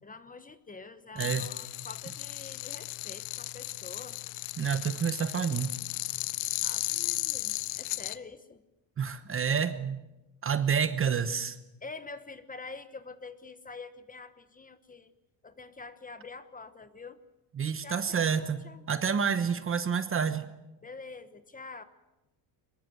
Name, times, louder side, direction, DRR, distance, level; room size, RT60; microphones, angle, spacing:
voice 1, 0.0-4.2 6.6-8.6 11.8-15.1 15.4-17.2 17.8-18.8 20.8-21.8, left 4 dB, 15° left, 12 dB, 1.1 m, -46 dB
sound 1, 1.2-8.2, left 20 dB, 80° left, 0.9 m, -35 dB
voice 2, 1.2-1.5 4.6-5.7 9.0-10.0 10.4-11.6 17.6-18.6 18.9-20.5, right 7 dB, 25° right, 12 dB, 1.0 m, -28 dB
23.5 x 21.5 x 7.9 m, 1.0 s
cardioid pair, 140°, 47 cm